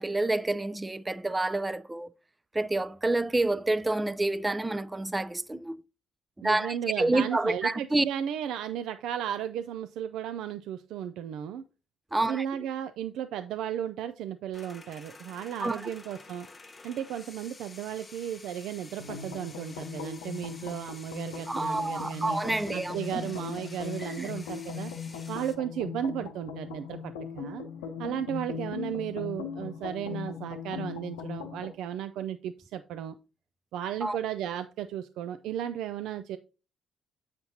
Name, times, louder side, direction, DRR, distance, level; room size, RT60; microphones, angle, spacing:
voice 1, 0.0-2.1 2.5-5.8 6.4-8.1 12.1-12.4 15.6-15.8 21.5-23.0 24.2-24.3 34.0-34.2, right 2 dB, 20° right, 0.5 m, -28 dB
voice 2, 6.4-11.7 12.3-16.5 16.8-22.4 22.7-24.9 25.3-27.6 28.0-33.1 33.7-36.4, right 10 dB, 75° right, 0.3 m, -35 dB
sound 1, 14.5-25.6, left 3 dB, 35° left, 1.1 m, -50 dB
sound 2, 19.0-31.7, left 7 dB, 90° left, 0.6 m, -39 dB
7.6 x 5.8 x 2.8 m
hypercardioid pair, 55°, 0 cm